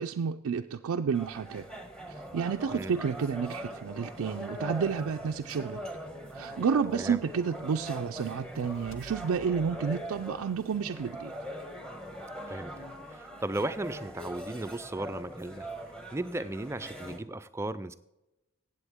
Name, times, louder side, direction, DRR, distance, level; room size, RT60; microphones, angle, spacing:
voice 1, 0.0-1.7 2.1-5.8 6.3-11.3, right 6 dB, 80° right, 5 dB, 0.4 m, -30 dB
sound 1, 1.1-17.2, equal, 5° left, 1.0 m, -42 dB
sound 2, 8.5-11.7, right 2 dB, 60° left, 0.9 m, -54 dB
voice 2, 13.1-15.7 16.1-17.9, right 2 dB, 10° right, 13 dB, 0.3 m, -35 dB
16.0 x 8.0 x 3.6 m, 0.95 s
head